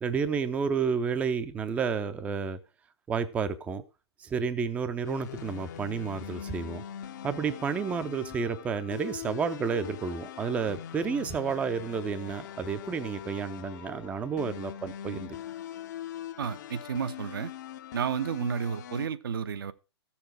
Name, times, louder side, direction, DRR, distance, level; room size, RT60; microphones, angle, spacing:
voice 1, 0.0-2.6 3.1-3.8 4.2-6.8 7.2-15.4, right 6 dB, 10° right, 0.6 m, -31 dB
sound 1, 5.0-19.1, left 10 dB, 45° left, 0.7 m, -42 dB
voice 2, 16.4-17.5 17.9-19.7, right 7 dB, 55° right, 0.7 m, -31 dB
14.0 x 7.1 x 4.7 m
figure-of-eight pair, 120°, 14 cm